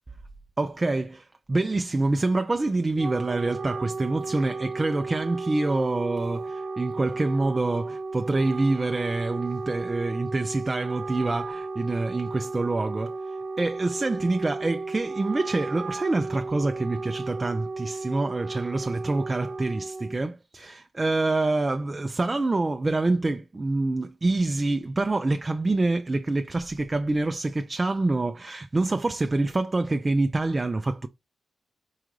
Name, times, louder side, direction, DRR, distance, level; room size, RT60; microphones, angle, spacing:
voice 1, 0.6-13.2 13.6-31.1, right 2 dB, 25° right, 0.4 m, -26 dB
Wind instrument woodwind instrument, 2.7-20.2, right 3 dB, 55° right, 1.0 m, -34 dB
4.7 x 2.4 x 3.1 m
cardioid pair, 75°, 0 cm